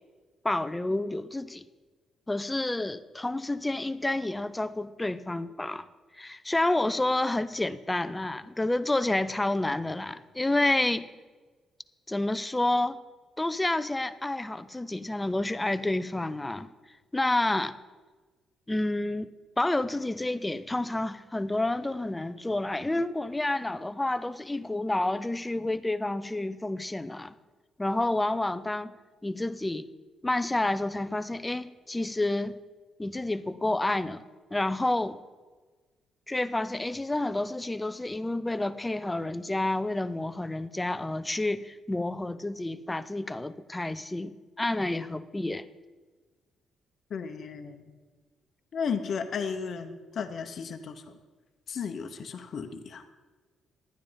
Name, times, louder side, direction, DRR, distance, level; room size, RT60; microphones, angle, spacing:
voice 1, 0.4-1.6 2.3-5.9 6.2-11.0 12.1-13.0 13.4-16.7 17.1-17.8 18.7-19.3 19.6-27.3 27.8-28.9 29.2-29.9 30.2-32.6 33.0-34.2 34.5-35.2 36.3-45.7, left 2 dB, 15° left, 0.5 m, -29 dB
voice 2, 47.1-47.9 48.7-51.0 51.7-53.0, left 6 dB, 55° left, 0.9 m, -34 dB
11.5 x 9.4 x 5.2 m
cardioid pair, 90°, 0 cm